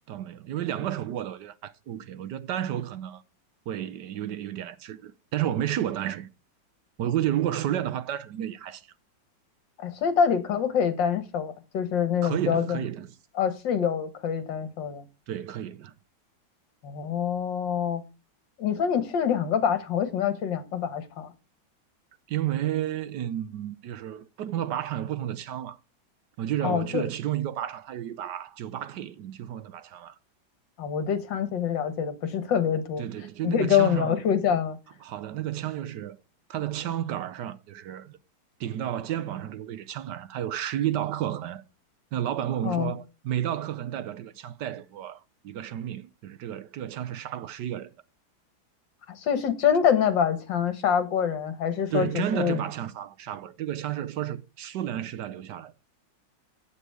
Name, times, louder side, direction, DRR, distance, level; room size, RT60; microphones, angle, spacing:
voice 1, 0.1-3.2 3.7-6.3 7.0-8.9 12.2-13.1 15.3-15.9 22.3-25.8 26.4-30.2 33.0-34.2 35.0-36.2 36.5-38.2 38.6-41.6 42.1-47.9 51.9-55.7, right 11 dB, 70° right, 1.2 m, -31 dB
voice 2, 9.8-12.8 13.4-15.0 16.8-18.0 18.6-21.3 26.6-27.1 30.8-33.1 33.4-34.8 42.6-42.9 49.2-52.6, left 8 dB, 70° left, 2.0 m, -25 dB
8.5 x 8.2 x 4.7 m
omnidirectional pair, 2.1 m